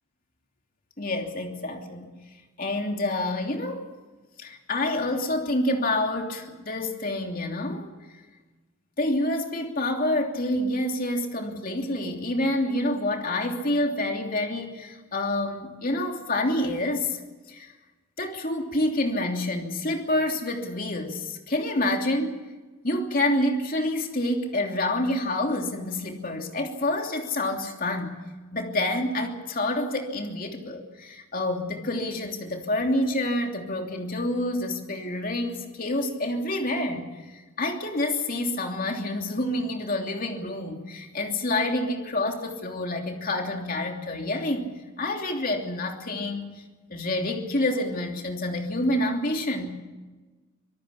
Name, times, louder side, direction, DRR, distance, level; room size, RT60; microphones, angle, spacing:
voice 1, 1.0-2.1 2.6-3.9 4.4-7.9 9.0-17.2 17.5-17.7 18.2-22.4 22.8-28.2 28.5-46.5 46.9-49.7, left 1 dB, 40° left, 3 dB, 3.0 m, -28 dB
25.5 x 18.5 x 7.2 m, 1.3 s
head